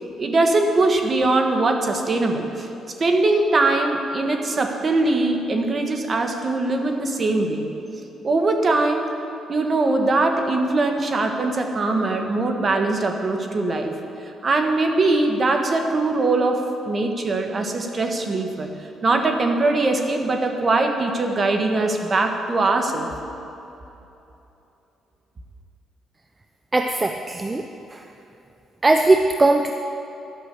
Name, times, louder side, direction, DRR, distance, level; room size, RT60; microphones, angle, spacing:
voice 1, 0.2-2.7 3.0-7.7 8.2-9.1 9.5-13.9 14.4-18.7 19.0-23.1, right 2 dB, 40° right, 4 dB, 1.3 m, -21 dB
voice 2, 26.7-27.7 27.9-28.0 28.8-29.7, right 2 dB, 20° right, 5 dB, 0.5 m, -19 dB
11.5 x 6.2 x 8.0 m, 2.9 s
cardioid pair, 90°, 0 cm